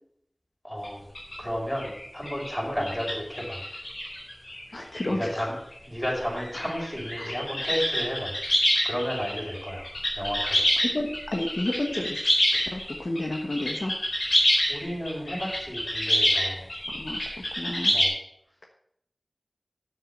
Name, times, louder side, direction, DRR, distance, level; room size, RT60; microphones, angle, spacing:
voice 1, 0.6-1.0 1.4-3.6 5.1-5.5 5.9-8.4 8.8-9.9 10.1-10.7 14.7-16.7 17.9-18.1, equal, 20° left, -2 dB, 5.5 m, -32 dB
sound 1, 0.8-0.9 1.1-1.4 1.8-4.6 4.9-5.2 5.7-5.8 6.2-18.1, equal, 90° left, 4.3 m, -27 dB
voice 2, 4.7-5.5 6.6-6.7 7.2-7.3 10.8-12.2 12.5-13.9 16.9-17.2 17.5-17.9, left 1 dB, 70° left, 2 dB, 1.2 m, -31 dB
8.1 x 7.7 x 7.8 m, 0.72 s
wide cardioid pair, 45°, 0 cm